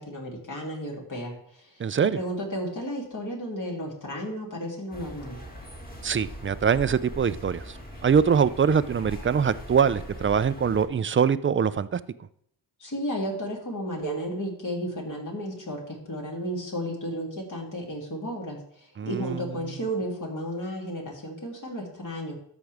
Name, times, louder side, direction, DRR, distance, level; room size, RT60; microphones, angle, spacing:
voice 1, 0.0-5.4 12.8-22.4, equal, 50° left, -1 dB, 3.0 m, -33 dB
voice 2, 1.8-2.2 6.0-7.8 8.0-12.0 19.0-19.6, right 7 dB, 30° right, 16 dB, 0.4 m, -23 dB
sound 1, 4.9-10.9, equal, 20° left, 2.2 m, -41 dB
13.0 x 6.1 x 3.5 m, 0.68 s
cardioid pair, 70°, 40 cm